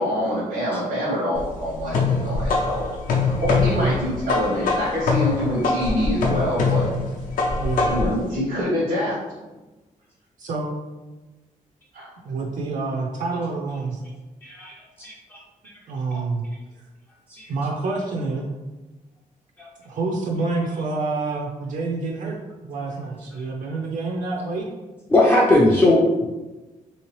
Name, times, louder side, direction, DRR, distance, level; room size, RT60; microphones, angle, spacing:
voice 1, 0.0-2.8 3.2-6.9 7.8-9.2 11.9-12.1, equal, 85° right, -7 dB, 1.0 m, -25 dB
sound 1, 1.3-8.2, left 4 dB, 80° left, 0.6 m, -23 dB
voice 2, 7.6-7.9 10.4-10.7 12.2-14.0 15.9-16.4 17.5-18.5 19.8-22.4 22.6-24.7, right 3 dB, 65° right, 0 dB, 0.5 m, -27 dB
voice 3, 14.4-15.4 17.3-17.5 19.6-19.7 25.1-26.3, left 1 dB, 15° left, -5 dB, 0.3 m, -19 dB
3.2 x 2.8 x 3.0 m, 1.2 s
wide cardioid pair, 180°, 14 cm